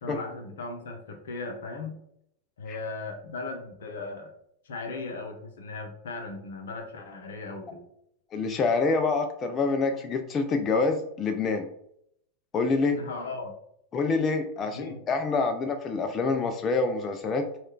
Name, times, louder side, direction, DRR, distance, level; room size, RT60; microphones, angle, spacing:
voice 1, 0.0-2.0 2.6-4.3 4.6-7.9 12.9-13.5 14.6-15.0, left 3 dB, 60° left, 3 dB, 0.7 m, -37 dB
voice 2, 8.3-11.7 12.5-13.0 13.9-17.5, left 4 dB, 25° left, 6 dB, 0.3 m, -26 dB
3.1 x 2.3 x 3.6 m, 0.72 s
figure-of-eight pair, 90°, 0 cm